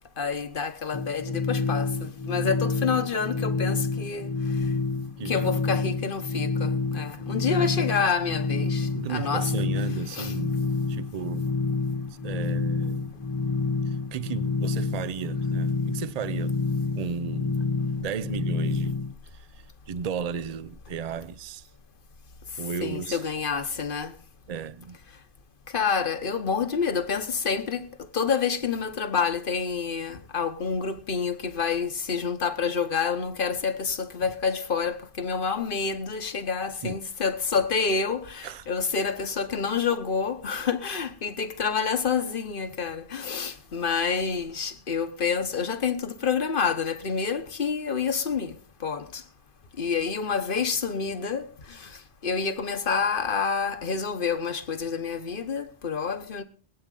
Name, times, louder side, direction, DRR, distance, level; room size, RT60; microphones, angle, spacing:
voice 1, 0.2-4.3 5.2-9.5 10.1-10.3 22.8-24.2 25.7-49.2 49.8-56.4, left 5 dB, 50° left, 1.3 m, -28 dB
sound 1, 0.9-19.1, left 4 dB, 30° left, 0.7 m, -28 dB
voice 2, 5.2-5.8 7.6-7.7 8.9-10.6 10.9-11.5 12.2-13.1 13.9-16.6 17.0-17.6 18.0-21.7 22.6-23.2 24.5-25.0 36.8-37.0 38.4-38.6, right 6 dB, 40° right, 0.6 m, -35 dB
22.5 x 8.8 x 3.9 m
omnidirectional pair, 1.2 m